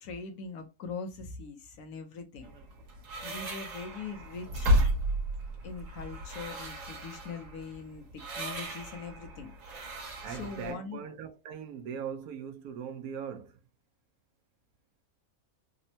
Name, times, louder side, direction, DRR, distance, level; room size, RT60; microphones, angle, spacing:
voice 1, 0.0-2.5 3.2-4.8 5.6-9.5 9.9-11.0, left 5 dB, 85° left, 1.2 m, -42 dB
sound 1, 2.4-10.7, equal, 65° right, 1.3 m, -33 dB
voice 2, 10.2-13.6, right 7 dB, 90° right, 1.1 m, -40 dB
3.5 x 2.1 x 2.7 m
omnidirectional pair, 1.5 m